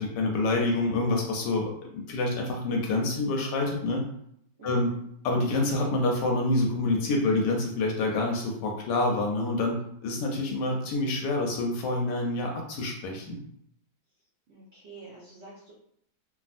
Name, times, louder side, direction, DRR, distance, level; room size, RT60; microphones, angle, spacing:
voice 1, 0.0-4.0 4.6-4.9 5.2-13.4, left 2 dB, 75° left, 1 dB, 1.1 m, -27 dB
voice 2, 4.6-5.0 14.5-15.7, right 2 dB, 80° right, -7 dB, 0.5 m, -47 dB
3.3 x 2.2 x 2.4 m, 0.71 s
omnidirectional pair, 2.1 m